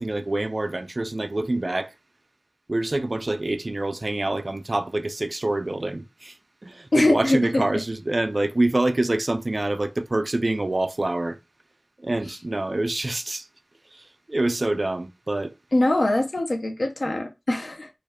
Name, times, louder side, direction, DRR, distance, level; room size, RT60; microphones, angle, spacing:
voice 1, 0.0-1.9 2.7-6.3 6.6-11.4 12.0-13.5 13.9-14.0 14.3-15.5 17.1-17.2, right 2 dB, 60° right, 0.3 m, -26 dB
voice 2, 6.9-7.6 15.7-17.9, left 1 dB, 85° left, 0.5 m, -22 dB
2.3 x 2.1 x 3.2 m
wide cardioid pair, 45°, 0 cm